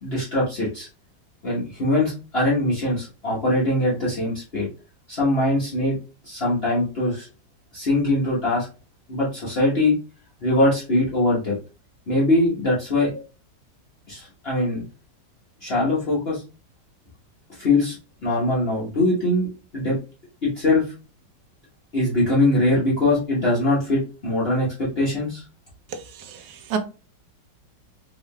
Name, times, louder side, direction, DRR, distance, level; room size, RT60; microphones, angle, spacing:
voice 1, 0.0-0.9 1.4-4.7 5.1-5.9 6.2-7.3 7.7-8.7 9.1-10.0 10.4-11.5 12.1-13.2 14.1-14.8 15.6-16.4 17.6-18.0 18.2-19.5 19.7-20.0 20.4-20.8 21.9-25.4, left 1 dB, 40° left, -8 dB, 1.2 m, -22 dB
voice 2, 26.2-26.8, right 6 dB, 70° right, 7 dB, 1.1 m, -30 dB
3.6 x 3.5 x 2.2 m, 0.33 s
omnidirectional pair, 1.9 m